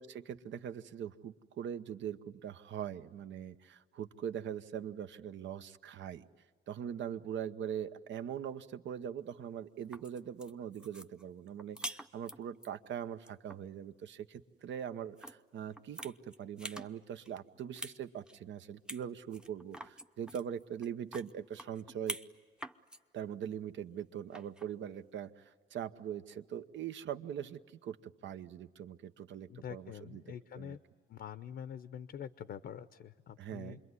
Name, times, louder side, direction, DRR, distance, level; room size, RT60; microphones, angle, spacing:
voice 1, 0.0-6.2 6.7-22.2 23.1-30.8 33.4-33.8, right 9 dB, 70° right, 11 dB, 0.9 m, -42 dB
sound 1, 9.7-12.7 13.1-13.6 15.2-15.4 15.7-16.9 17.2-18.0 18.3-18.4 18.9-19.0 19.3-22.3 22.6-23.0 24.3-24.7, equal, 5° right, 0.7 m, -45 dB
voice 2, 29.5-30.8 31.1-33.8, left 9 dB, 60° left, 12 dB, 0.7 m, -45 dB
27.5 x 22.0 x 9.7 m, 1.4 s
cardioid pair, 90°, 20 cm